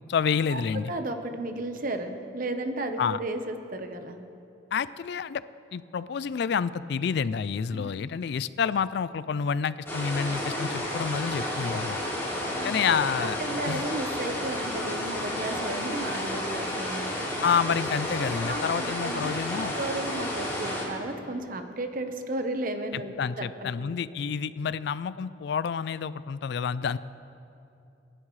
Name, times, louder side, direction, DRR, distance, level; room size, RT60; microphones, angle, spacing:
voice 1, 0.1-0.9 3.0-3.2 4.7-5.4 5.7-12.0 12.6-13.4 13.7-13.8 17.4-19.7 22.9-27.0, left 6 dB, 60° left, 16 dB, 0.3 m, -28 dB
voice 2, 0.9-4.2 7.7-7.9 12.6-17.1 18.4-19.3 19.7-23.8, right 2 dB, 45° right, 6 dB, 1.0 m, -34 dB
sound 1, 9.9-20.8, left 1 dB, 15° left, 3.6 m, -31 dB
27.5 x 11.0 x 3.2 m, 2.8 s
head